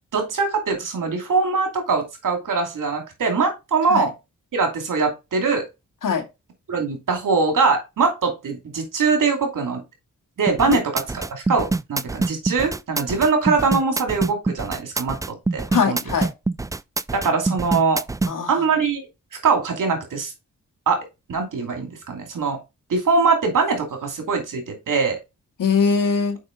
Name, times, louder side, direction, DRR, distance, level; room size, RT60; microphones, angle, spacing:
voice 1, 0.1-4.1 4.5-5.6 6.7-9.8 10.4-16.0 17.1-18.0 18.5-19.0 19.4-20.3 20.9-21.0 21.3-22.6 22.9-25.2, right 4 dB, 70° right, 4 dB, 2.6 m, -22 dB
sound 1, 10.5-18.3, right 3 dB, 10° right, 0.3 m, -25 dB
voice 2, 15.7-16.3 18.3-18.6 25.6-26.4, left 5 dB, 75° left, 4 dB, 2.0 m, -21 dB
6.5 x 5.3 x 3.9 m, 0.24 s
cardioid pair, 60°, 32 cm